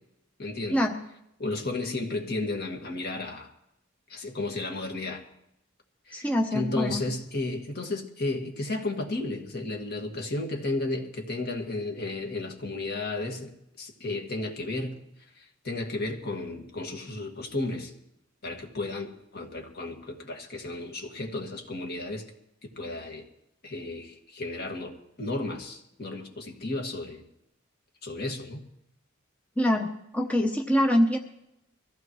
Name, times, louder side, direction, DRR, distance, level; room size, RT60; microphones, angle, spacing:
voice 1, 0.4-0.8 1.4-3.5 4.1-5.2 6.1-15.0 15.4-17.9 18.4-22.3 22.6-23.3 23.6-27.2 28.0-28.6, left 2 dB, 50° left, 2 dB, 2.0 m, -33 dB
voice 2, 6.1-7.0 29.6-31.2, left 1 dB, 5° left, 2 dB, 0.9 m, -24 dB
23.0 x 15.0 x 3.1 m, 0.81 s
head